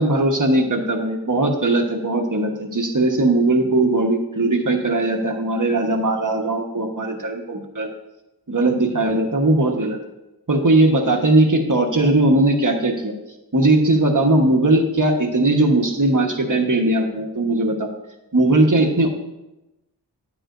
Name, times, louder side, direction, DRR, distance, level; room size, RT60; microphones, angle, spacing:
voice 1, 0.0-7.9 8.5-10.0 10.5-13.1 13.5-17.9 18.3-19.1, right 2 dB, 50° right, 2 dB, 1.3 m, -19 dB
10.0 x 8.4 x 2.6 m, 0.95 s
wide cardioid pair, 55°, 41 cm